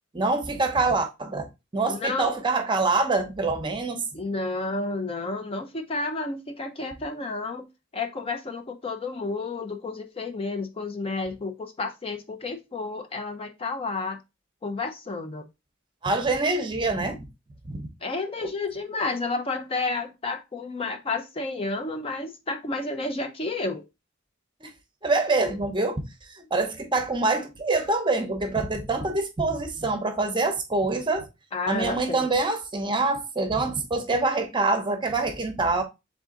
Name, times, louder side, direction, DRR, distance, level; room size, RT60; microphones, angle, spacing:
voice 1, 0.1-4.0 16.0-17.3 17.6-17.9 18.4-18.5 24.6-24.7 25.0-26.0 26.3-31.3 31.7-35.8, right 3 dB, 25° right, 0.8 m, -25 dB
voice 2, 1.9-2.3 4.1-7.7 7.9-14.2 14.6-15.5 18.0-23.8 31.5-32.3, left 3 dB, 30° left, 0.5 m, -31 dB
3.7 x 3.6 x 3.7 m
head